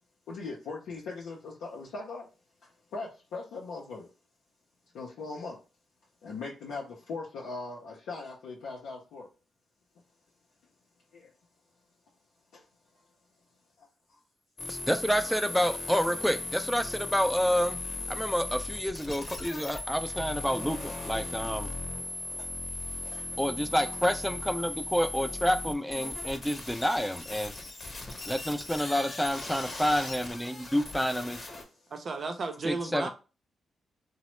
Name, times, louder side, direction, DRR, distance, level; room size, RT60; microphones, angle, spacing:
voice 1, 0.3-2.3 2.6-4.1 4.9-5.6 6.2-9.3 11.1-11.3 12.5-12.6 13.8-13.9 21.3-21.5 21.8-23.6 27.7-28.3 30.5-30.7 31.8-31.9, left 3 dB, 85° left, 0.5 m, -41 dB
sound 1, 14.6-31.6, left 2 dB, 40° left, 0.8 m, -38 dB
voice 2, 14.7-17.8 18.1-21.7 23.4-27.5 28.3-31.4 32.6-33.1, equal, 5° left, 0.4 m, -29 dB
voice 3, 31.9-33.1, right 3 dB, 55° right, 0.6 m, -33 dB
2.9 x 2.0 x 3.0 m
cardioid pair, 60°, 0 cm